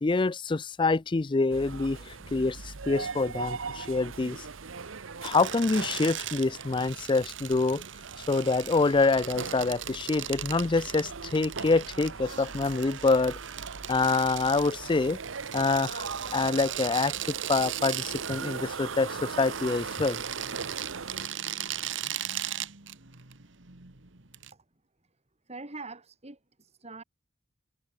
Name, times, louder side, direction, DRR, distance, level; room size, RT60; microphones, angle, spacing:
voice 1, 0.0-4.4 5.2-7.8 8.3-13.4 13.9-15.2 15.5-16.1 16.3-20.2, left 3 dB, 25° left, 0.4 m, -26 dB
sound 1, 1.5-21.3, right 5 dB, 85° right, 1.1 m, -40 dB
sound 2, 5.2-24.5, right 10 dB, 65° right, 2.0 m, -38 dB
voice 2, 25.5-27.0, right 3 dB, 35° right, 2.9 m, -43 dB
head